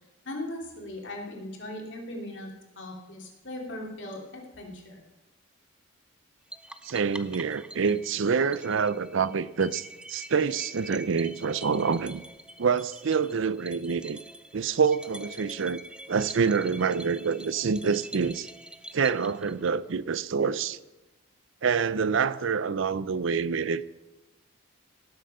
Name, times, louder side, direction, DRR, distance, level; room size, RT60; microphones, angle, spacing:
voice 1, 0.2-2.5 2.8-5.0, left 1 dB, 55° left, 2.9 m, -38 dB
sound 1, 6.5-20.0, right 1 dB, 5° right, 0.3 m, -46 dB
voice 2, 6.8-12.2 12.6-14.2 14.5-15.8 16.1-18.5 18.9-20.8 21.6-23.8, right 5 dB, 65° right, 0.5 m, -26 dB
18.0 x 7.8 x 5.6 m
head